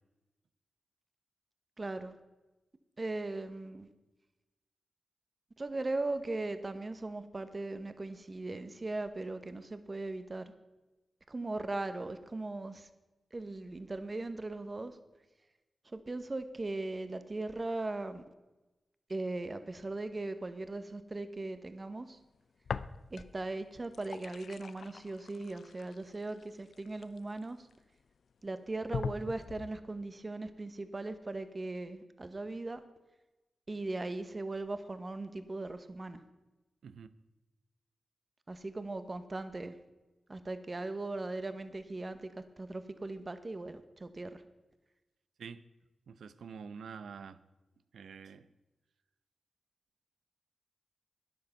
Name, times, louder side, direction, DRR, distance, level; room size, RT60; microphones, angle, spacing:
voice 1, 1.8-2.1 3.0-3.9 5.6-10.5 11.3-12.9 13.3-15.0 15.8-18.2 19.1-22.2 23.1-27.7 28.4-32.8 33.7-36.2 38.5-39.8 40.3-44.4, right 2 dB, 35° right, 10 dB, 1.1 m, -39 dB
sound 1, 22.7-23.4 23.8-27.7 28.3-28.4 28.9-29.8, left 5 dB, 75° left, 0.4 m, -42 dB
voice 2, 46.1-47.4 47.9-48.5, right 6 dB, 85° right, 14 dB, 0.6 m, -47 dB
12.0 x 10.5 x 5.7 m, 1.1 s
cardioid pair, 65°, 0 cm